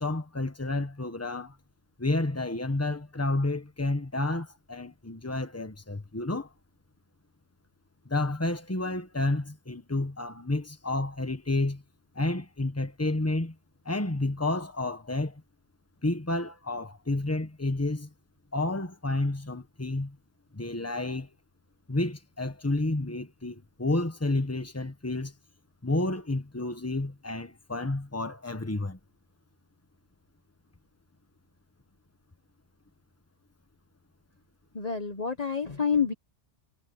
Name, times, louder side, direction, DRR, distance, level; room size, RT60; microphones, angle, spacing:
voice 1, 0.0-1.6 2.0-6.5 8.0-11.8 12.1-13.5 13.8-15.4 16.0-18.1 18.5-20.2 20.5-21.3 21.9-25.3 25.8-29.0, left 2 dB, 15° left, 1.4 m, -30 dB
voice 2, 34.7-36.1, left 6 dB, 40° left, 1.2 m, -28 dB
omnidirectional pair, 1.1 m